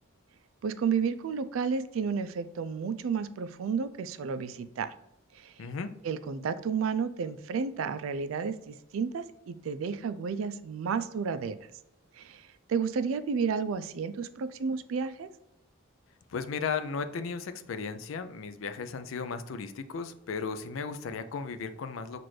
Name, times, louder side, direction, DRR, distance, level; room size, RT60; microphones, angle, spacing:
voice 1, 0.6-4.9 5.3-5.5 6.0-11.6 12.2-15.3, right 6 dB, 90° right, 13 dB, 0.4 m, -32 dB
voice 2, 5.6-5.9 16.3-22.3, left 5 dB, 80° left, 11 dB, 0.4 m, -35 dB
5.9 x 2.5 x 3.1 m, 0.87 s
head